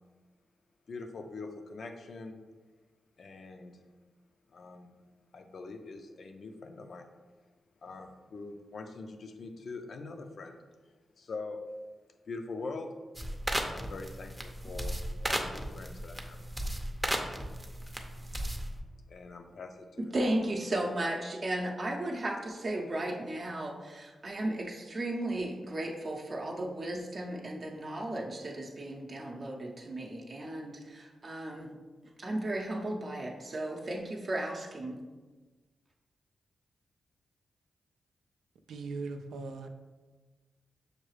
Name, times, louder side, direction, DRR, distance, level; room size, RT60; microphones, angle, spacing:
voice 1, 0.9-2.4 3.2-3.8 4.5-4.9 5.3-7.1 7.8-10.6 11.2-11.6 12.3-13.3 13.7-14.3 14.6-16.4 19.1-20.3, left 3 dB, 65° left, 6 dB, 0.5 m, -43 dB
sound 1, 13.1-18.8, right 1 dB, 5° right, 0.6 m, -35 dB
voice 2, 20.0-31.7 32.2-35.0, right 1 dB, 50° right, -1 dB, 0.6 m, -35 dB
voice 3, 38.7-39.7, right 3 dB, 90° right, 7 dB, 0.3 m, -39 dB
6.4 x 2.3 x 3.2 m, 1.3 s
cardioid pair, 70°, 0 cm